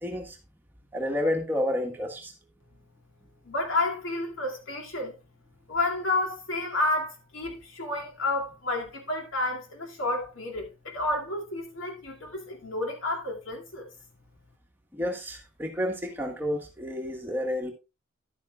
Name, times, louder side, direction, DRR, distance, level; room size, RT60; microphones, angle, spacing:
voice 1, 0.0-0.4 0.9-2.3 14.9-17.7, left 1 dB, 10° right, 1.5 m, -30 dB
voice 2, 3.5-5.1 5.7-13.9, left 2 dB, 85° left, 2.6 m, -30 dB
11.0 x 9.2 x 2.4 m
head